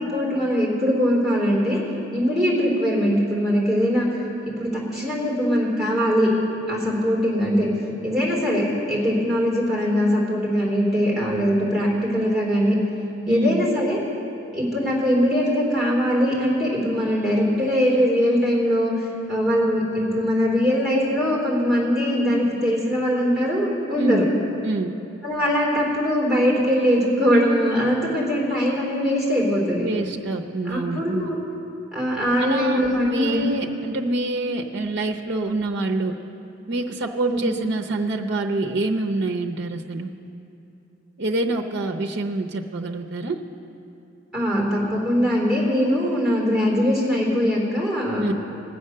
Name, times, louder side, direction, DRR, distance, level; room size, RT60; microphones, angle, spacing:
voice 1, 0.0-1.8 2.1-4.1 4.4-6.3 6.7-7.7 8.0-8.6 8.9-12.8 13.3-14.0 14.5-18.9 19.3-24.2 25.2-29.9 30.7-31.4 31.9-33.4 37.3-37.4 44.3-48.2, equal, ahead, -4 dB, 3.6 m, -21 dB
voice 2, 13.3-13.7 24.0-24.2 24.6-24.9 29.8-31.3 32.4-36.1 36.7-40.1 41.2-43.4 48.2-48.3, right 2 dB, 60° right, 3 dB, 0.7 m, -26 dB
19.5 x 7.8 x 6.6 m, 2.8 s
head